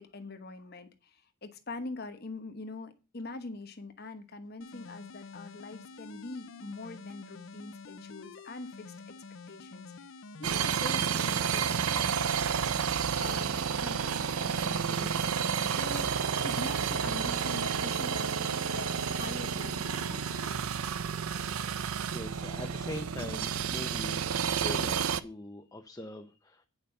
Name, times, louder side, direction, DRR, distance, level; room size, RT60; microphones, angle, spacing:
voice 1, 0.0-9.1 9.5-10.1 10.4-12.2 13.2-16.1 16.4-20.4 21.3-21.6, left 2 dB, 50° left, 7 dB, 1.2 m, -43 dB
sound 1, 4.6-20.6, left 4 dB, 65° left, 0.6 m, -48 dB
sound 2, 10.4-25.2, right 7 dB, 90° right, 0.6 m, -31 dB
voice 2, 22.1-26.6, left 1 dB, 15° left, 5 dB, 0.6 m, -42 dB
9.0 x 5.1 x 6.6 m, 0.31 s
head